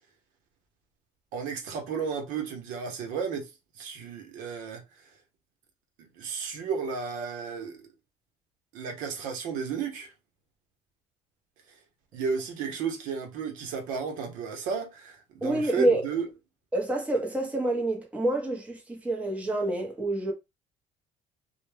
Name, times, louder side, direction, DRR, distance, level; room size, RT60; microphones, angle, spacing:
voice 1, 1.3-3.5 3.8-4.8 6.2-7.9 8.7-10.1 12.1-16.3, right 5 dB, 85° right, 0.7 m, -33 dB
voice 2, 15.4-16.0 16.7-20.3, right 1 dB, 10° right, 0.7 m, -27 dB
2.1 x 2.1 x 3.1 m
cardioid pair, 125°, 13 cm